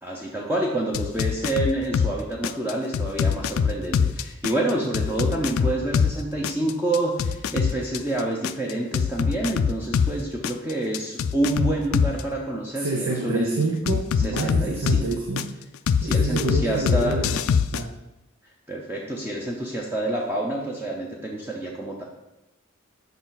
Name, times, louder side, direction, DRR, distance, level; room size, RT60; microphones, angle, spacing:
voice 1, 0.0-13.5 14.2-15.1 16.0-17.2 18.7-22.0, right 1 dB, 10° right, -2 dB, 0.6 m, -28 dB
sound 1, 0.9-2.1 2.4-6.1 6.4-10.1 10.4-12.2 13.9-15.4 15.9-17.8, left 6 dB, 80° left, 0.3 m, -23 dB
voice 2, 12.8-15.5 16.0-17.4 17.7-17.9, right 3 dB, 85° right, 1 dB, 0.7 m, -27 dB
6.7 x 5.2 x 3.9 m, 0.93 s
head